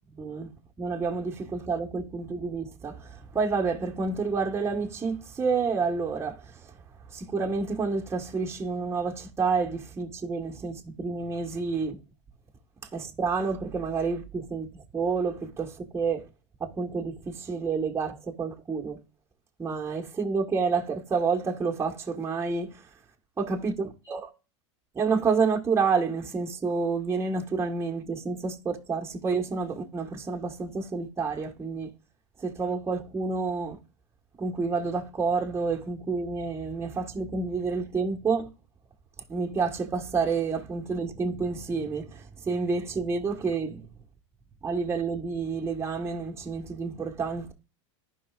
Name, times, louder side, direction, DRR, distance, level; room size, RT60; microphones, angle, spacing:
voice 1, 0.1-0.5 0.8-6.4 7.1-12.0 12.9-16.2 16.6-19.0 19.6-22.7 23.4-24.3 24.9-31.9 32.4-33.8 34.4-38.5 39.3-43.8 44.6-47.5, right 4 dB, 15° right, 1.4 m, -29 dB
14.5 x 5.5 x 2.4 m
hypercardioid pair, 110°, 16 cm